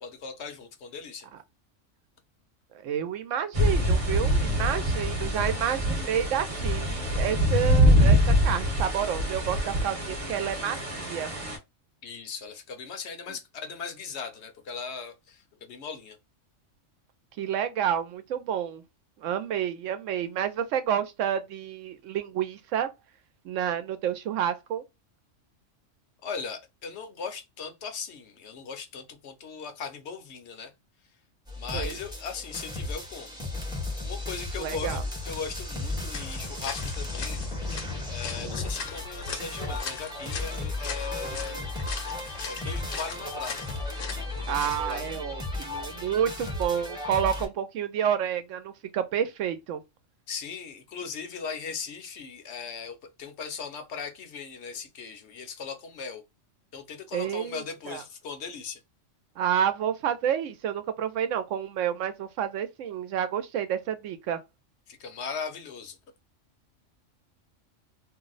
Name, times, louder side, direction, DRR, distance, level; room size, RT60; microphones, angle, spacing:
voice 1, 0.0-1.3 12.0-16.2 26.2-30.7 31.6-33.3 34.0-37.8 38.1-41.7 42.4-43.7 44.4-45.1 45.6-45.7 50.3-56.2 56.7-58.8 64.9-66.0, left 5 dB, 65° left, 0.8 m, -38 dB
voice 2, 2.8-11.3 17.4-18.8 19.2-22.9 23.4-24.8 31.7-31.9 34.6-35.0 44.5-49.8 57.1-58.0 59.4-64.4, right 9 dB, 80° right, 0.9 m, -29 dB
sound 1, 3.5-11.6, equal, 30° right, 0.9 m, -24 dB
sound 2, 31.5-47.5, left 2 dB, 5° right, 0.7 m, -35 dB
sound 3, 36.1-45.1, left 5 dB, 85° left, 1.1 m, -40 dB
2.6 x 2.0 x 3.8 m
omnidirectional pair, 1.3 m